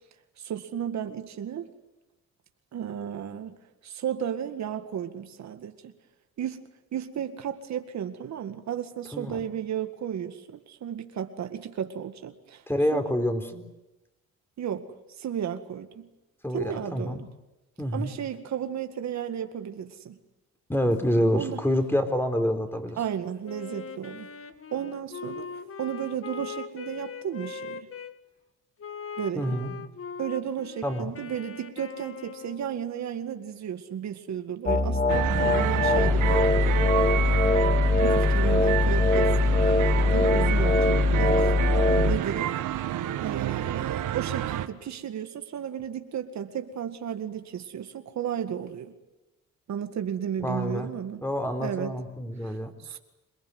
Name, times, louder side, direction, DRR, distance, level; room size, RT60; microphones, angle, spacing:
voice 1, 0.4-1.7 2.7-3.6 3.8-5.9 6.4-6.6 6.9-12.6 12.9-13.0 14.6-16.1 16.5-17.3 17.9-20.2 21.3-21.6 23.0-24.3 24.7-25.5 25.8-27.9 29.2-29.6 30.2-37.0 38.0-39.8 40.1-41.4 42.0-42.6 43.2-48.9 49.7-51.2 51.6-51.9 52.4-53.0, right 9 dB, 65° right, 7 dB, 2.0 m, -33 dB
voice 2, 9.1-9.4 12.7-13.6 16.4-17.2 17.8-18.1 20.7-23.0 29.3-29.8 30.8-31.2 50.4-50.9 51.2-52.7, equal, 5° left, 7 dB, 4.0 m, -27 dB
Wind instrument woodwind instrument, 23.4-28.1 28.8-32.7, left 5 dB, 45° left, 2.0 m, -40 dB
sound 1, 34.7-42.2, left 2 dB, 30° left, 2.5 m, -22 dB
sound 2, 35.1-44.7, right 12 dB, 85° right, 1.6 m, -29 dB
27.5 x 20.0 x 9.6 m, 0.99 s
cardioid pair, 90°, 30 cm